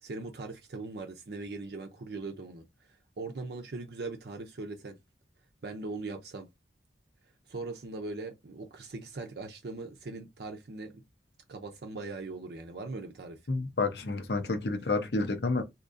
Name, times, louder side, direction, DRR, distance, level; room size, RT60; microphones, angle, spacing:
voice 1, 0.0-5.0 5.6-6.5 7.5-11.0 11.5-13.4, right 3 dB, 60° right, 0.6 m, -40 dB
voice 2, 13.5-15.6, left 3 dB, 65° left, 0.8 m, -29 dB
3.7 x 2.8 x 2.6 m
head